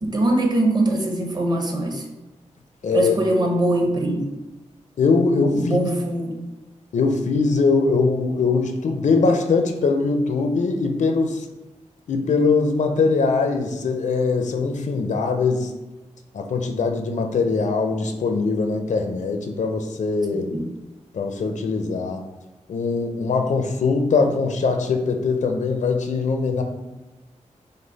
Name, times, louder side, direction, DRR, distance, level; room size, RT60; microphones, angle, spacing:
voice 1, 0.0-2.0 2.9-4.2 5.5-6.3 20.3-20.6, right 1 dB, 35° right, 2 dB, 0.7 m, -22 dB
voice 2, 2.8-3.1 5.0-5.8 6.9-11.5 12.1-15.7 16.3-20.5 21.1-22.2 22.7-26.6, left 4 dB, 80° left, 4 dB, 0.5 m, -21 dB
5.2 x 2.0 x 4.0 m, 1.1 s
wide cardioid pair, 130°, 12 cm